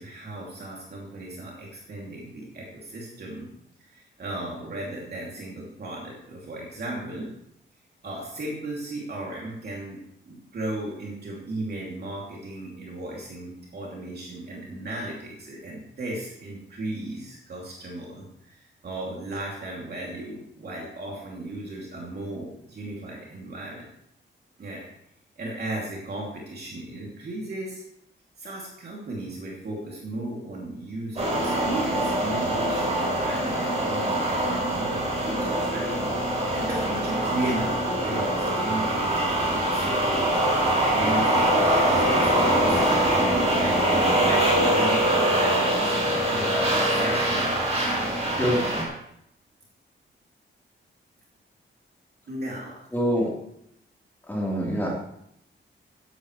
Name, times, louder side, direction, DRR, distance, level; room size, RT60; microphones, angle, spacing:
voice 1, 0.0-3.5 3.8-7.3 8.0-10.0 10.3-23.9 24.6-24.8 25.4-27.8 28.4-40.6 40.9-43.1 43.6-43.8 44.2-47.5 47.8-48.8 52.3-52.8, right 1 dB, 55° right, -3 dB, 2.8 m, -36 dB
sound 1, 31.2-48.8, right 1 dB, 35° right, 4.1 m, -23 dB
voice 2, 48.4-48.8 52.9-53.3 54.3-54.9, equal, 10° left, -4 dB, 3.7 m, -25 dB
15.0 x 11.0 x 3.2 m, 0.76 s
wide cardioid pair, 180°, 20 cm